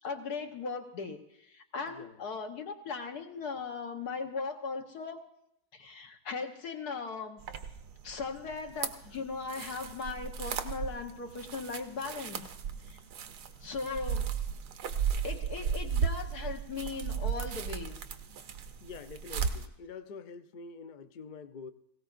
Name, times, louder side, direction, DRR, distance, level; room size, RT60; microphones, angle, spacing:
voice 1, 0.0-5.2 5.7-7.4 8.0-12.5 12.9-13.0 13.6-14.3 15.2-18.0, left 4 dB, 85° left, 4 dB, 1.7 m, -38 dB
voice 2, 1.8-2.2 18.8-21.7, left 5 dB, 60° left, 9 dB, 0.5 m, -46 dB
sound 1, 7.4-19.7, right 7 dB, 90° right, 1.4 m, -35 dB
18.0 x 17.0 x 2.5 m, 0.78 s
omnidirectional pair, 1.6 m